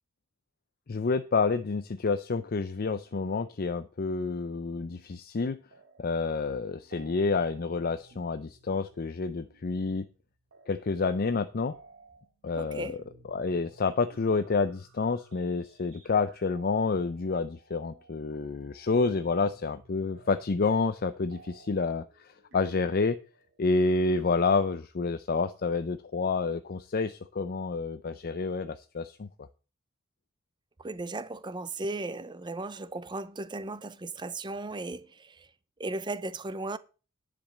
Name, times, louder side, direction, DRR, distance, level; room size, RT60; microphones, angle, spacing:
voice 1, 0.9-5.6 6.0-10.1 10.7-11.7 12.4-13.0 13.3-23.2 23.6-29.3, left 4 dB, 45° left, 0.5 m, -29 dB
sound 1, 5.7-6.3 6.6-24.9, right 3 dB, 60° right, 2.2 m, -58 dB
voice 2, 12.5-13.0 30.8-35.5 35.8-36.8, right 2 dB, 20° right, 0.6 m, -36 dB
10.5 x 5.1 x 7.7 m
head